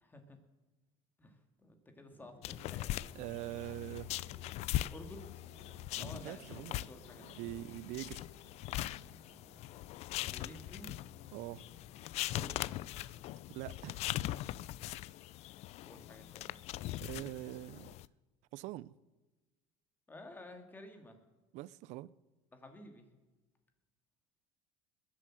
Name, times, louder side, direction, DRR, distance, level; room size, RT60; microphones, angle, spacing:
voice 1, 0.0-0.4 1.2-2.9 4.9-5.2 6.0-7.4 10.2-10.9 12.3-12.5 15.8-16.6 20.1-21.2 22.5-23.1, left 1 dB, 15° left, 2.2 m, -52 dB
Drum, 2.1-14.5, right 2 dB, 40° right, 4.1 m, -63 dB
sound 1, 2.4-18.1, left 15 dB, 55° left, 0.4 m, -41 dB
voice 2, 3.1-4.1 5.9-6.7 7.2-8.3 11.3-11.7 13.5-14.0 17.0-17.9 18.5-19.0 21.5-22.1, right 16 dB, 65° right, 0.5 m, -43 dB
21.0 x 7.5 x 7.6 m
cardioid pair, 130°, 13 cm